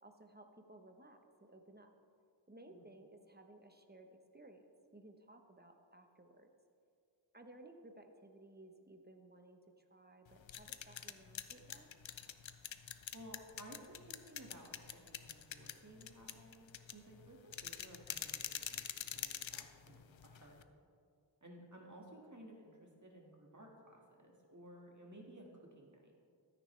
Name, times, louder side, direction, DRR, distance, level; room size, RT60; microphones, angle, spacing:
voice 1, 0.0-1.9 2.5-4.7 4.9-6.5 7.3-11.9, right 1 dB, 20° right, 5 dB, 0.9 m, -59 dB
sound 1, 10.3-20.6, left 9 dB, 85° left, 0.6 m, -46 dB
voice 2, 13.1-20.6 21.4-26.1, right 1 dB, 40° right, -1 dB, 1.8 m, -56 dB
13.5 x 9.4 x 3.3 m, 2.3 s
wide cardioid pair, 50°, 45 cm